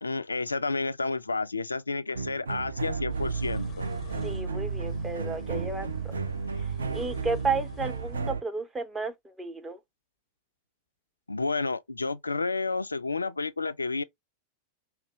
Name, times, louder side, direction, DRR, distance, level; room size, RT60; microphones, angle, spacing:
voice 1, 0.0-3.9 11.3-14.0, left 3 dB, 80° left, 0.3 m, -30 dB
sound 1, 2.1-8.4, right 5 dB, 75° right, 0.4 m, -33 dB
sound 2, 3.1-8.3, left 8 dB, 30° left, 0.6 m, -46 dB
voice 2, 4.2-6.2 6.9-9.8, right 3 dB, 15° right, 0.8 m, -33 dB
5.0 x 2.1 x 3.4 m
figure-of-eight pair, 90°, 0 cm